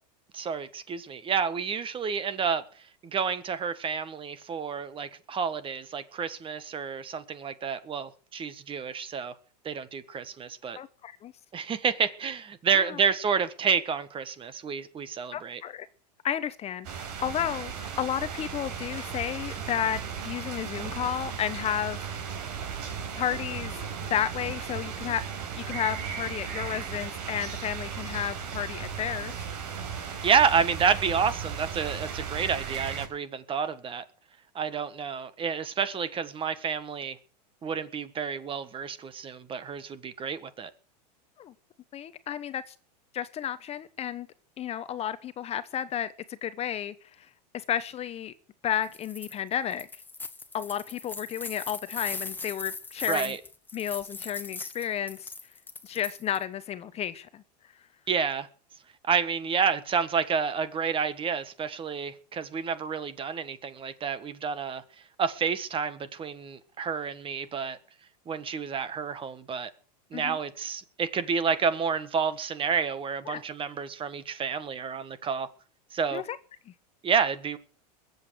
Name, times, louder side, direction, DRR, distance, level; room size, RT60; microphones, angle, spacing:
voice 1, 0.3-2.6 3.0-9.3 9.6-10.8 11.5-15.6 30.2-34.0 34.5-37.2 37.6-40.7 53.1-53.4 58.1-58.5 59.1-64.8 65.2-67.8 68.3-69.7 70.1-75.5 75.9-76.2 77.0-77.6, right 6 dB, 25° right, 1.5 m, -29 dB
voice 2, 10.8-11.3 12.7-13.0 15.3-15.9 16.2-20.0 20.2-22.1 23.2-25.2 25.6-29.4 41.4-41.5 41.9-42.7 43.1-44.3 44.6-47.3 47.5-48.3 48.6-49.9 50.5-53.4 53.7-55.3 55.8-57.4 70.1-70.4 73.3-73.4 76.1-76.4 76.7-76.8, left 10 dB, 30° left, 0.9 m, -32 dB
sound 1, 16.8-33.1, right 7 dB, 65° right, 5.0 m, -36 dB
sound 2, 48.8-49.3 49.7-56.4, left 3 dB, 10° left, 1.4 m, -39 dB
21.5 x 8.2 x 6.5 m
supercardioid pair, 120°, 21 cm